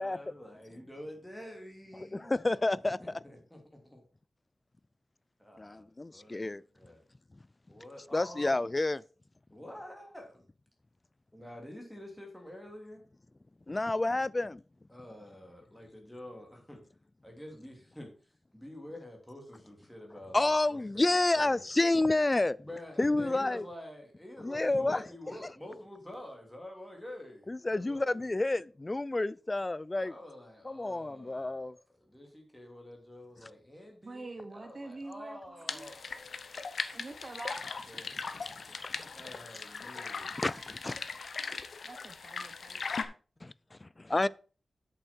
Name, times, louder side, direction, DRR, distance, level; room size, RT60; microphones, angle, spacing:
voice 1, 0.0-2.3 3.0-4.0 5.4-6.4 6.7-7.0 7.7-8.7 9.5-10.4 11.3-13.0 14.9-16.8 17.2-18.1 18.5-21.1 21.4-21.6 22.6-28.3 29.9-31.7 32.0-36.0 37.9-38.1 38.9-40.4 44.0-44.1, left 1 dB, 5° left, 2.8 m, -48 dB
voice 2, 2.1-3.0 5.6-6.6 8.1-9.0 13.7-14.6 20.3-22.6 23.0-23.7 24.4-25.0 27.5-30.1 30.6-31.7 40.4-41.0 43.4-44.3, left 2 dB, 25° left, 0.3 m, -29 dB
voice 3, 34.0-35.9 36.9-37.7 39.9-40.7 41.8-42.8, right 2 dB, 40° right, 0.9 m, -46 dB
sound 1, 35.7-43.0, left 5 dB, 70° left, 0.8 m, -39 dB
8.2 x 7.0 x 4.5 m
wide cardioid pair, 115°, 0 cm